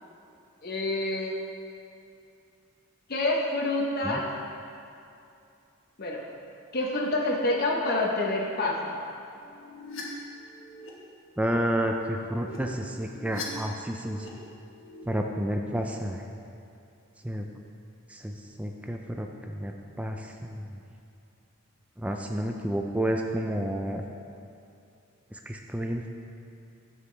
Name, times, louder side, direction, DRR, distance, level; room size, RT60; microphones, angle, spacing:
voice 1, 0.6-1.3 3.1-4.3 6.0-6.3 6.7-9.0, left 2 dB, 50° left, -2 dB, 0.9 m, -27 dB
sound 1, 9.4-10.0 10.4-10.9 11.9-13.4 13.7-14.3 14.6-15.1, left 3 dB, 70° left, 1.2 m, -43 dB
voice 2, 11.4-14.3 15.1-16.2 17.2-17.5 18.1-18.3 18.6-19.7 20.0-20.6 22.0-24.0 25.5-26.1, equal, 5° right, 2 dB, 0.4 m, -30 dB
9.7 x 7.1 x 3.3 m, 2.6 s
head